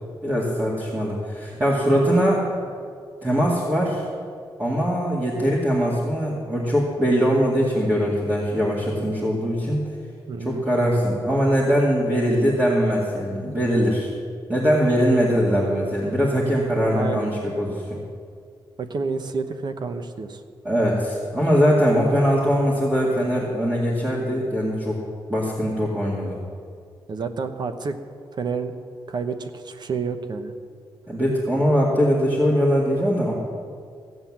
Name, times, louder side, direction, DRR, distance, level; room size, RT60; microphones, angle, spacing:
voice 1, 0.2-2.4 3.2-4.1 4.6-9.8 10.4-14.1 14.5-18.0 20.6-25.0 25.3-26.4 31.1-33.3, equal, 20° right, -5 dB, 2.2 m, -21 dB
voice 2, 10.3-10.6 16.9-17.3 18.8-20.4 27.1-28.0 28.3-28.7 29.1-30.5, right 4 dB, 55° right, 8 dB, 1.0 m, -29 dB
16.0 x 8.1 x 7.3 m, 2.2 s
wide cardioid pair, 125°, 9 cm